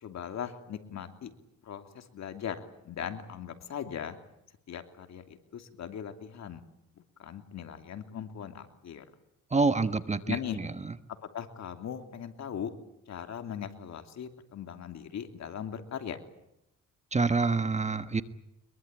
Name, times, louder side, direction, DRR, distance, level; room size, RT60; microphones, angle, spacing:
voice 1, 0.0-1.3 1.6-4.2 4.7-6.6 7.2-9.1 10.3-10.6 11.3-12.7 13.1-16.2, left 8 dB, 65° left, 7 dB, 3.0 m, -39 dB
voice 2, 9.5-10.9 17.1-18.2, right 4 dB, 25° right, 11 dB, 1.4 m, -27 dB
23.5 x 22.5 x 9.0 m, 0.85 s
cardioid pair, 90°, 30 cm